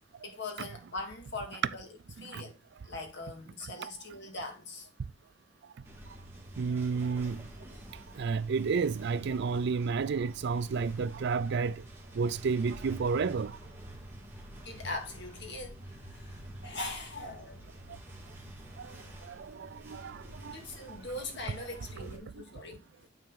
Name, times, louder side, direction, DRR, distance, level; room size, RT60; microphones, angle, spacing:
voice 1, 0.2-2.6 2.8-4.9 14.7-17.6 20.5-23.1, left 2 dB, 65° left, 2.0 m, -41 dB
sound 1, 5.8-22.2, right 1 dB, 10° right, 1.9 m, -48 dB
voice 2, 6.6-7.4 8.1-11.8 12.1-13.6 18.8-19.0 19.2-20.6 22.4-22.5, right 5 dB, 60° right, 0.4 m, -31 dB
9.4 x 4.3 x 3.7 m
head